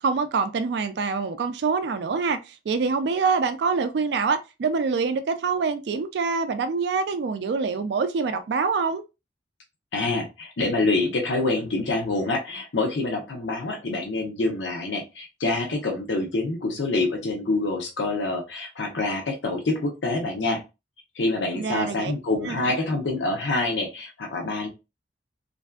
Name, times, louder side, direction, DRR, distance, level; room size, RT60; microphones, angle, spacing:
voice 1, 0.0-9.0 21.5-22.1 22.4-22.6, right 4 dB, 65° right, 0.3 m, -25 dB
voice 2, 9.9-20.6 21.2-24.7, left 2 dB, 85° left, 0.7 m, -26 dB
3.2 x 2.5 x 2.3 m
head